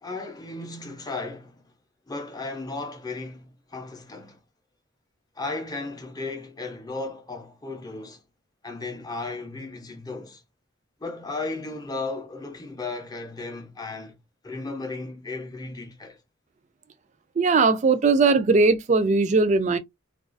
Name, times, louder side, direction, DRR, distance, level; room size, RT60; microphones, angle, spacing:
voice 1, 0.0-1.7 2.1-4.4 5.4-8.2 8.6-10.4 11.0-16.2, left 3 dB, 20° left, 0.5 m, -35 dB
voice 2, 17.4-19.8, right 4 dB, 35° right, 0.4 m, -19 dB
2.3 x 2.3 x 2.4 m
head